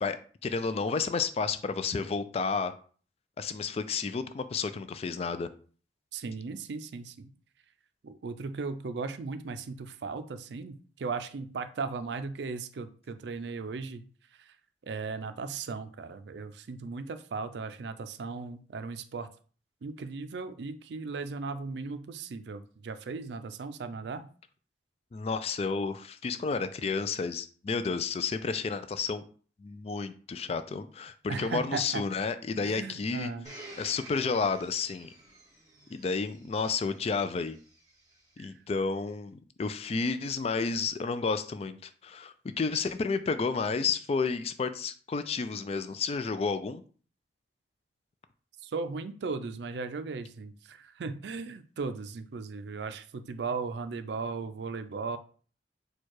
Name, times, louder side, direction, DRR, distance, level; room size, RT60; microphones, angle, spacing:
voice 1, 0.0-2.7 3.4-5.5 25.1-29.2 29.6-33.3 33.8-35.1 35.9-37.6 38.4-46.8, left 4 dB, 35° left, 11 dB, 0.3 m, -31 dB
voice 2, 6.1-7.3 8.0-14.0 14.5-14.6 14.8-19.3 19.8-24.3 31.3-32.0 32.5-33.5 38.4-38.5 48.6-55.2, right 4 dB, 70° right, 10 dB, 0.4 m, -37 dB
Domestic sounds home sounds, 33.4-38.3 39.1-39.2, right 2 dB, 20° right, 1.3 m, -51 dB
4.4 x 2.3 x 4.6 m, 0.41 s
head